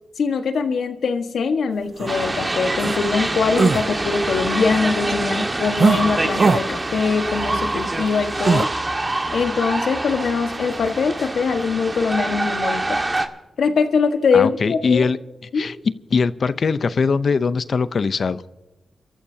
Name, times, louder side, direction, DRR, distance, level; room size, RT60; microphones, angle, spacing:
voice 1, 0.2-8.7 9.3-13.0 13.6-15.1 15.5-15.7, left 5 dB, 75° left, 6 dB, 1.5 m, -22 dB
sound 1, 2.0-2.1 2.8-3.0 3.5-3.9 5.8-6.0 6.4-6.6 8.4-8.7, right 4 dB, 50° right, 0.4 m, -18 dB
sound 2, 2.1-13.3, right 2 dB, 25° right, 1.6 m, -25 dB
voice 2, 14.3-15.2 15.5-15.8 16.1-18.4, left 5 dB, 60° left, 14 dB, 0.6 m, -21 dB
29.5 x 14.0 x 2.8 m, 1.1 s
cardioid pair, 70°, 0 cm